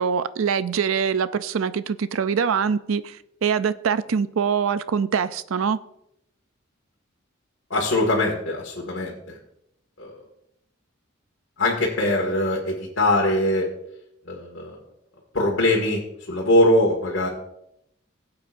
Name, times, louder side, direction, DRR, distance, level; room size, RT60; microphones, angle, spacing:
voice 1, 0.0-5.8, right 6 dB, 90° right, 14 dB, 0.5 m, -24 dB
voice 2, 7.7-9.3 10.0-10.1 11.6-13.7 14.3-14.8 15.3-16.0 16.3-17.3, left 1 dB, 65° left, -3 dB, 2.0 m, -22 dB
17.5 x 8.2 x 2.6 m, 0.79 s
head